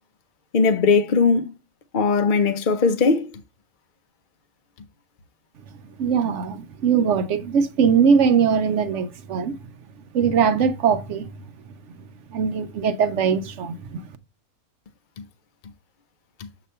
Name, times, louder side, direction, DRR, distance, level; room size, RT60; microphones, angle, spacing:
voice 1, 0.5-1.5 1.9-3.3 15.2-15.3 16.4-16.5, left 4 dB, 45° left, 0.7 m, -19 dB
voice 2, 6.0-9.6 10.1-11.4 12.3-14.0, right 6 dB, 60° right, 0.9 m, -21 dB
7.9 x 3.0 x 5.4 m
omnidirectional pair, 1.5 m